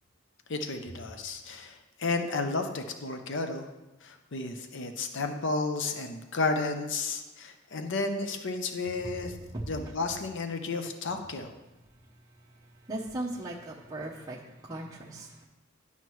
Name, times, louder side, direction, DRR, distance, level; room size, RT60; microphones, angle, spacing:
voice 1, 0.5-3.7 4.0-9.4 9.7-11.5, left 3 dB, 65° left, 6 dB, 0.7 m, -32 dB
voice 2, 12.6-15.5, right 1 dB, 20° right, -6 dB, 0.7 m, -38 dB
11.0 x 5.6 x 3.1 m, 1.1 s
head